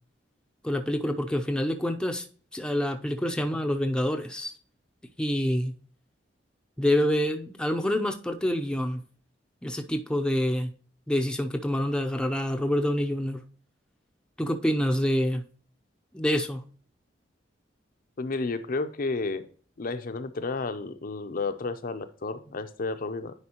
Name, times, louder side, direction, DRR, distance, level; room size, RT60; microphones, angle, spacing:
voice 1, 0.6-2.3 2.5-4.5 5.2-5.7 6.8-9.0 9.6-10.7 11.1-13.4 14.4-15.4 16.1-16.6, left 1 dB, 5° left, 0.6 m, -27 dB
voice 2, 18.2-19.4 19.8-23.3, left 3 dB, 50° left, 0.6 m, -31 dB
9.7 x 4.7 x 2.9 m
head